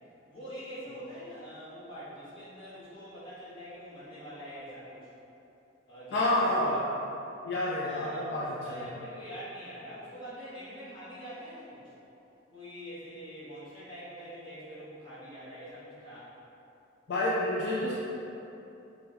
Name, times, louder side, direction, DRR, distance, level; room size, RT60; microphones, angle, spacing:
voice 1, 0.3-5.1 5.9-6.8 7.8-11.9 12.5-16.3, equal, 25° left, -12 dB, 1.2 m, -44 dB
voice 2, 6.1-6.8 7.4-8.8 17.1-17.9, left 1 dB, 55° left, -6 dB, 0.4 m, -29 dB
5.5 x 2.2 x 2.9 m, 2.9 s
head